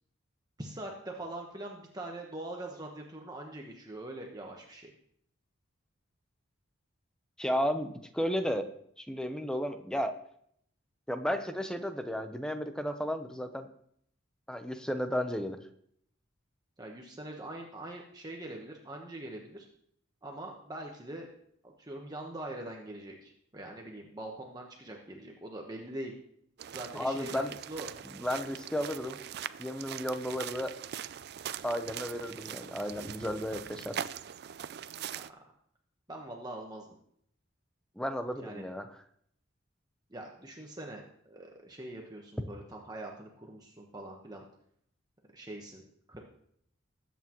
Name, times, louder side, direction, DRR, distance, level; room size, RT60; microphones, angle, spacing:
voice 1, 0.6-4.9 16.8-19.7 20.2-21.3 21.6-26.1 26.7-27.9 35.1-35.4 36.1-36.9 38.4-38.6 40.1-44.5 45.3-45.8 46.1-46.2, right 1 dB, 20° right, 0 dB, 1.1 m, -43 dB
voice 2, 7.4-8.7 9.0-10.2 11.1-13.7 14.5-15.6 27.0-27.5 28.2-29.2 29.6-30.7 31.6-33.9 38.0-38.9, equal, 5° left, 7 dB, 0.8 m, -33 dB
sound 1, 26.6-35.3, right 9 dB, 50° right, 0.4 m, -42 dB
20.0 x 8.4 x 3.0 m, 0.68 s
head